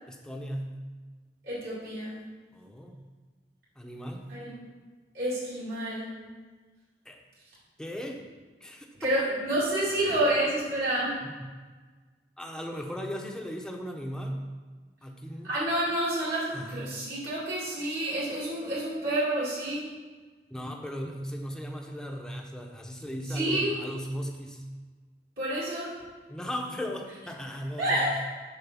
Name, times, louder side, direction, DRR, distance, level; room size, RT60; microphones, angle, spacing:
voice 1, 0.1-0.8 2.5-3.0 3.8-4.3 7.1-7.2 7.8-8.2 8.6-9.1 11.2-11.5 12.4-14.4 15.0-15.5 16.5-16.8 20.5-24.6 26.3-28.2, equal, 5° left, 1 dB, 0.7 m, -37 dB
voice 2, 1.4-2.2 4.3-4.5 5.1-6.1 9.0-11.2 15.4-19.9 23.3-23.7 25.4-25.9 27.8-28.2, right 1 dB, 60° right, -8 dB, 2.1 m, -29 dB
6.8 x 4.5 x 6.0 m, 1.4 s
head